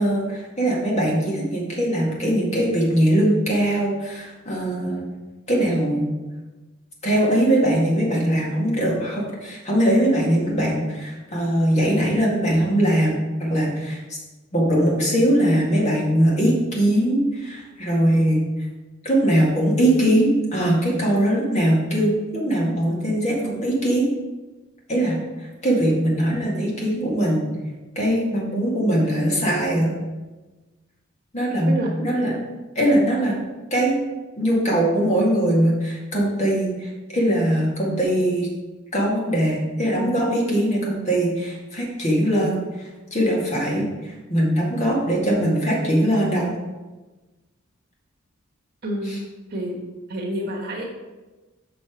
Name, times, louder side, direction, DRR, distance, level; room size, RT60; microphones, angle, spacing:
voice 1, 0.0-5.1 5.5-6.1 7.0-14.2 14.5-18.4 19.0-24.1 24.9-27.5 28.0-29.9 31.3-32.4 32.8-33.3 33.7-34.0 34.4-38.5 38.9-46.5 49.0-49.2, right 1 dB, 35° left, -4 dB, 2.0 m, -21 dB
voice 2, 50.1-50.8, equal, 50° right, -2 dB, 1.5 m, -28 dB
6.7 x 6.0 x 4.5 m, 1.2 s
head